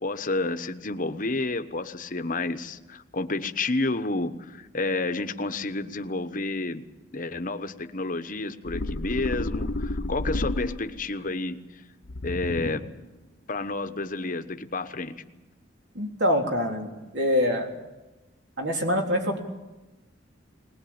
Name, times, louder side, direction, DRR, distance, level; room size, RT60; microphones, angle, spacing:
voice 1, 0.0-6.8 7.1-11.8 12.2-12.8 13.5-15.2, left 2 dB, 45° left, 9 dB, 1.1 m, -30 dB
sound 1, 8.7-11.1 12.1-13.0, left 2 dB, 70° left, 1.0 m, -31 dB
voice 2, 16.0-17.7 18.6-19.4, left 1 dB, 60° right, 1 dB, 3.6 m, -25 dB
20.5 x 20.0 x 8.8 m, 1.1 s
head